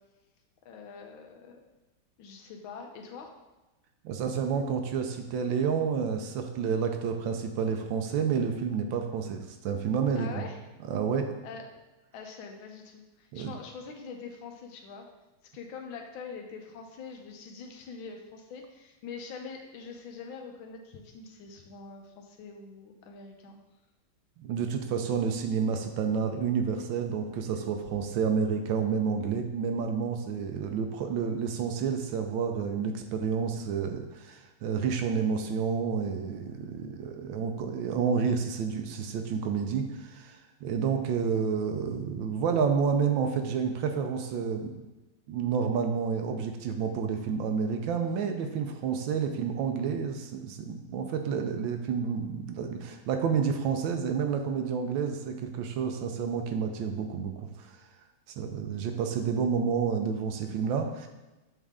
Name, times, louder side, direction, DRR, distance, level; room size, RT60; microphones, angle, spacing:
voice 1, 0.6-1.6 2.2-3.3 10.1-10.6 11.4-11.7 12.1-15.1 15.5-23.6, left 5 dB, 80° left, 2 dB, 1.5 m, -44 dB
voice 2, 4.0-10.4 10.9-11.3 13.3-13.5 24.4-44.7 45.3-57.8 58.4-61.1, right 6 dB, 75° right, 5 dB, 1.3 m, -29 dB
7.4 x 3.7 x 3.5 m, 1.1 s
omnidirectional pair, 2.2 m